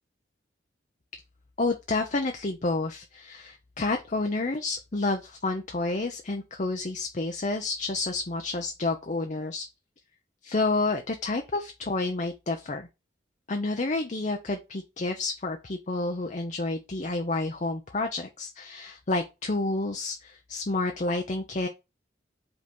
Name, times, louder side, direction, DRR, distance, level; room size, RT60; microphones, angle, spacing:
voice 1, 1.6-9.6 10.4-12.9 13.5-21.7, left 2 dB, 40° left, 0.7 m, -29 dB
5.3 x 4.0 x 5.4 m
head